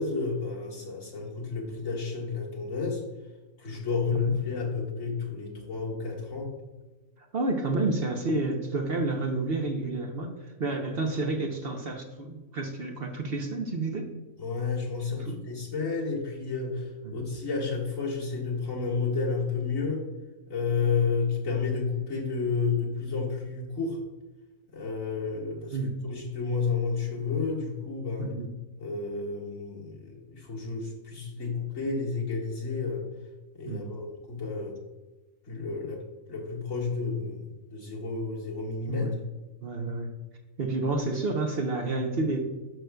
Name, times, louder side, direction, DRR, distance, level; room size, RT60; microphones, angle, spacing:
voice 1, 0.0-3.0 3.6-6.5 14.4-20.0 20.5-24.0 24.7-25.8 26.0-28.3 28.8-33.0 33.5-34.8 35.5-39.1, left 4 dB, 70° left, -3 dB, 2.1 m, -31 dB
voice 2, 7.3-14.1 15.1-15.4 17.0-17.1 25.7-26.0 28.2-28.5 33.7-34.0 38.9-39.1 39.6-40.1 40.6-42.4, right 2 dB, 50° right, 3 dB, 0.9 m, -30 dB
11.0 x 6.4 x 2.3 m, 1.2 s
omnidirectional pair, 1.4 m